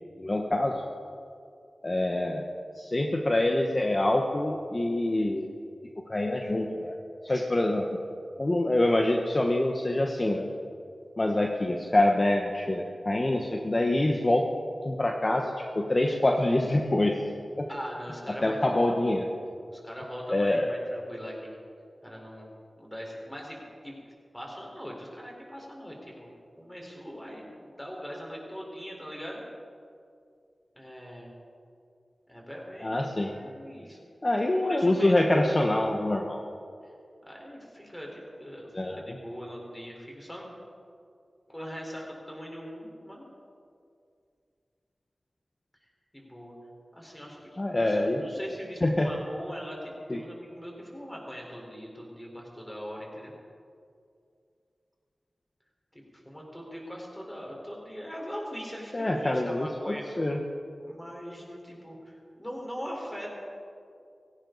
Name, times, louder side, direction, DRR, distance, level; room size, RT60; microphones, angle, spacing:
voice 1, 0.2-0.8 1.8-2.5 2.8-5.5 6.1-6.9 7.2-7.8 8.4-10.5 11.2-14.5 14.8-17.2 17.6-17.7 18.4-19.2 20.3-20.7 32.8-33.3 34.2-36.4 38.7-39.2 47.6-48.4 48.8-49.1 50.1-50.2 58.9-60.4, left 1 dB, 35° left, 2 dB, 1.1 m, -25 dB
voice 2, 7.3-7.7 17.7-19.0 19.6-21.6 22.0-24.0 24.3-26.3 26.6-29.4 30.7-31.3 32.3-34.0 34.4-35.4 37.2-38.7 39.0-40.5 41.5-43.3 45.8-45.9 46.1-46.6 46.9-53.3 55.9-60.2 60.8-63.3, equal, 10° left, -2 dB, 4.4 m, -41 dB
17.0 x 16.5 x 4.1 m, 2.4 s
wide cardioid pair, 60°, 0 cm